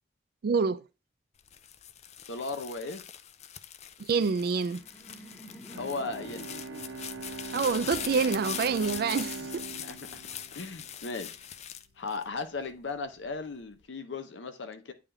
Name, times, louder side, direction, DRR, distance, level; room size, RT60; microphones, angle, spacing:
voice 1, 0.4-0.8 4.0-4.8 7.5-9.6, right 5 dB, 55° right, 0.4 m, -27 dB
sound 1, 1.4-12.7 13.3-13.8, left 9 dB, 40° left, 0.4 m, -42 dB
voice 2, 2.3-3.0 5.7-6.5 9.8-10.2 10.5-11.5 12.0-14.9, left 3 dB, 80° left, 0.8 m, -37 dB
Laughter, 4.2-9.2, equal, 15° left, 1.1 m, -51 dB
Bowed string instrument, 5.7-11.3, right 4 dB, 80° right, 0.8 m, -42 dB
8.5 x 3.6 x 3.4 m
head